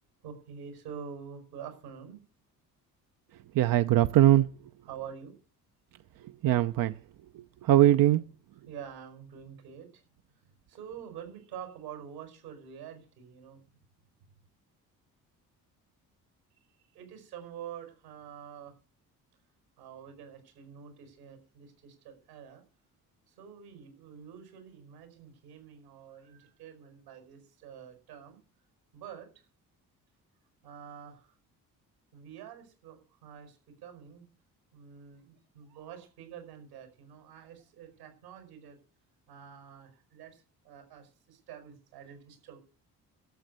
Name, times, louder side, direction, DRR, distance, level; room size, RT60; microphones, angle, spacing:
voice 1, 0.2-2.2 4.9-5.3 8.7-10.0 10.7-13.6 16.9-18.7 19.8-22.6 23.3-28.4 28.9-29.3 30.6-31.3 32.1-34.2 34.7-38.8 39.3-42.6, right 8 dB, 80° right, 6 dB, 5.3 m, -47 dB
voice 2, 3.5-4.5 6.4-6.9 7.3-8.2, right 13 dB, 45° right, 12 dB, 0.7 m, -21 dB
13.0 x 8.1 x 7.8 m, 0.39 s
figure-of-eight pair, 45°, 47 cm